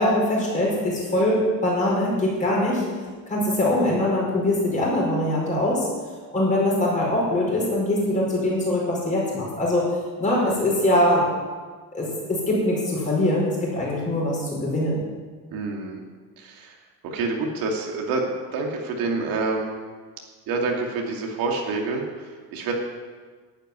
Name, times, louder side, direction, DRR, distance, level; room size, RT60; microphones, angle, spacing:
voice 1, 0.0-2.8 3.3-5.9 6.3-9.9 10.2-11.2 11.9-15.0, left 1 dB, 20° left, -4 dB, 4.9 m, -22 dB
voice 2, 15.5-16.0 16.4-19.7 20.5-22.7, right 3 dB, 60° right, 0 dB, 2.5 m, -28 dB
12.0 x 9.0 x 9.6 m, 1.5 s
cardioid pair, 175°, 39 cm